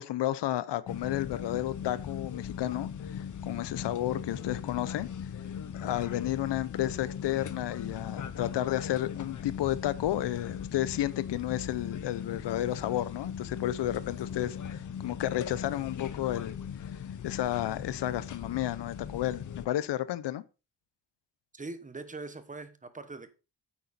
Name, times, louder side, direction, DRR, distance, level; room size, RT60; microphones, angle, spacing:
voice 1, 0.0-5.1 5.7-16.6 16.9-20.4, left 13 dB, 85° left, 0.8 m, -32 dB
sound 1, 0.9-19.7, left 8 dB, 45° left, 0.9 m, -39 dB
voice 2, 21.5-23.3, right 3 dB, 20° right, 1.1 m, -42 dB
9.3 x 8.5 x 4.2 m
wide cardioid pair, 140°, 41 cm